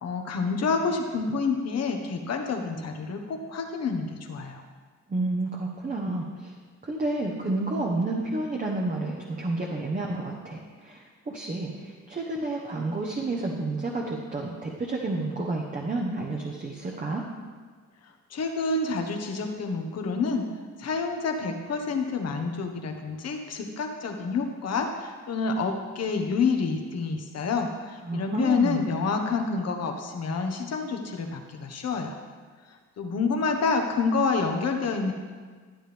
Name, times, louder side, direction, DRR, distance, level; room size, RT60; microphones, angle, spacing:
voice 1, 0.0-4.6 18.3-20.5 20.8-32.2 33.0-35.1, left 4 dB, 55° left, 4 dB, 1.4 m, -28 dB
voice 2, 5.1-6.5 6.8-17.2 28.0-28.8, right 2 dB, 25° right, -1 dB, 1.2 m, -30 dB
12.5 x 8.8 x 3.5 m, 1.5 s
cardioid pair, 90°, 30 cm